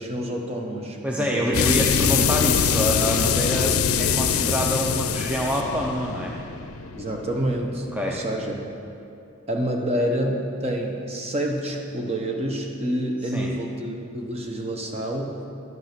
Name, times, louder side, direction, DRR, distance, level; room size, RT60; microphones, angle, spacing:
voice 1, 0.0-1.6 2.1-2.2 6.9-8.6 9.5-15.4, right 1 dB, 30° right, 1 dB, 1.0 m, -28 dB
voice 2, 1.0-6.4 7.9-8.2 13.3-13.5, equal, 5° right, -1 dB, 0.5 m, -27 dB
sound 1, 1.5-8.0, left 6 dB, 90° left, 0.5 m, -23 dB
10.5 x 6.3 x 5.9 m, 2.6 s
head